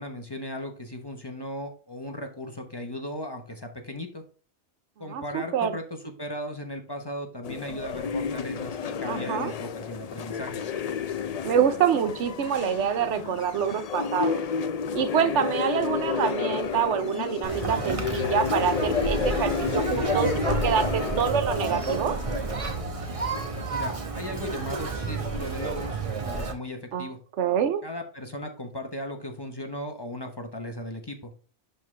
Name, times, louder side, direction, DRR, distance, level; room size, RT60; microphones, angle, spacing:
voice 1, 0.0-4.2 5.0-10.6 23.7-27.2 27.8-31.3, left 1 dB, 25° left, 4 dB, 0.8 m, -37 dB
voice 2, 5.1-5.7 9.1-9.5 11.4-14.4 14.9-22.1 26.9-27.1 27.4-27.8, right 8 dB, 90° right, 10 dB, 1.0 m, -26 dB
sound 1, 7.4-22.4, left 7 dB, 60° left, 0.4 m, -31 dB
Conversation, 17.4-26.5, right 3 dB, 30° right, 0.9 m, -30 dB
11.0 x 3.8 x 3.2 m, 0.39 s
omnidirectional pair, 1.2 m